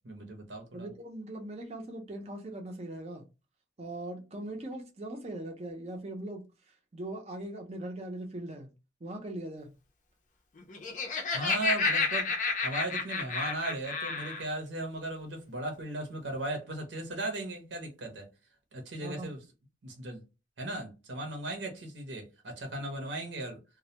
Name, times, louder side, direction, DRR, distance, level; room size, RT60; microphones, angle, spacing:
voice 1, 0.0-0.9 11.3-12.3 12.6-18.3 18.7-19.4 19.8-20.2 20.6-23.6, right 2 dB, 70° right, 0.7 m, -37 dB
voice 2, 0.7-3.2 3.8-6.4 6.9-8.7 9.0-9.7 19.0-19.3, right 1 dB, 35° right, 0.5 m, -40 dB
Laughter, 10.6-14.4, left 4 dB, 40° left, 0.5 m, -30 dB
2.2 x 2.1 x 2.8 m
head